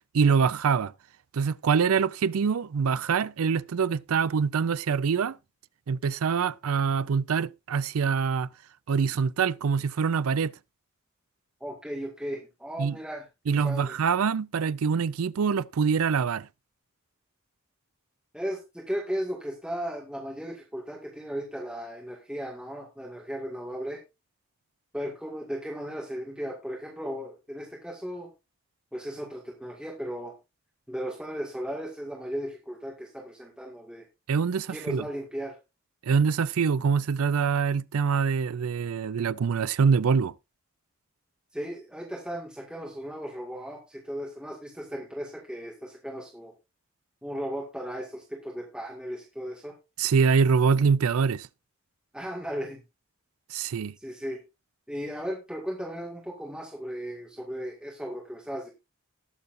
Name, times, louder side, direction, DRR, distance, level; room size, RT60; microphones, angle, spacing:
voice 1, 0.1-0.9 1.3-5.4 5.9-8.5 8.9-10.5 12.8-12.9 13.5-16.5 34.3-35.0 36.1-40.3 50.0-51.5 53.5-53.9, right 6 dB, 85° right, 0.4 m, -24 dB
voice 2, 11.6-13.3 13.6-14.0 18.3-24.0 24.9-28.3 28.9-30.4 30.9-34.1 34.7-35.6 41.5-46.5 47.2-49.7 52.1-52.8 54.0-54.4 54.9-58.7, equal, 5° right, 1.9 m, -36 dB
19.5 x 7.0 x 2.6 m
head